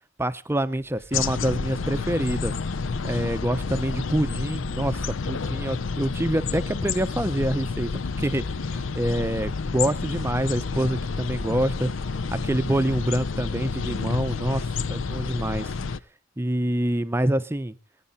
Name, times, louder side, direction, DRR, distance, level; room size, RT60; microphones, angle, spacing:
voice 1, 0.2-2.5 3.0-5.0 5.2-7.9 8.2-8.4 8.9-11.9 12.3-15.7 16.4-17.7, right 1 dB, 15° right, 12 dB, 0.6 m, -26 dB
sound 1, 0.8-9.9, equal, 70° left, 7.0 m, -53 dB
sound 2, 1.1-16.0, left 4 dB, 85° left, 0.6 m, -29 dB
20.0 x 9.7 x 4.1 m, 0.35 s
head